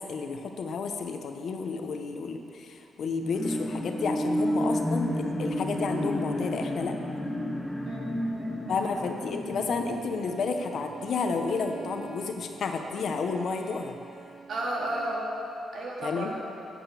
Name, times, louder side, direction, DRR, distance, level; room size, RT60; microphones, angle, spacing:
voice 1, 0.0-6.9 8.7-14.0 16.0-16.3, left 4 dB, 65° left, 5 dB, 0.9 m, -31 dB
sound 1, 3.1-10.9 11.4-11.5, equal, 10° left, 1.1 m, -31 dB
voice 2, 7.9-8.9 14.5-15.3 15.7-16.4, right 1 dB, 65° right, -3 dB, 2.5 m, -33 dB
Bowed string instrument, 9.8-15.3, right 6 dB, 85° right, 2.6 m, -46 dB
9.1 x 8.0 x 7.0 m, 2.7 s
cardioid pair, 90°, 0 cm